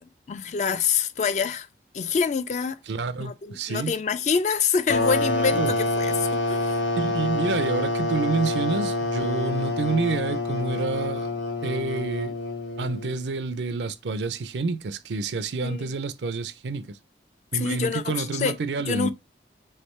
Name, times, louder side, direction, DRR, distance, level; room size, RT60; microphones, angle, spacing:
voice 1, 0.0-1.7 1.9-2.8 3.2-6.8 15.6-15.9 17.5-19.1, left 6 dB, 40° left, 0.3 m, -26 dB
voice 2, 2.9-3.9 5.4-5.7 7.0-11.3 11.6-12.4 12.8-17.0 17.5-19.1, right 4 dB, 80° right, 0.5 m, -28 dB
sound 1, 4.9-13.3, left 2 dB, 85° left, 1.0 m, -27 dB
3.5 x 3.3 x 4.1 m
head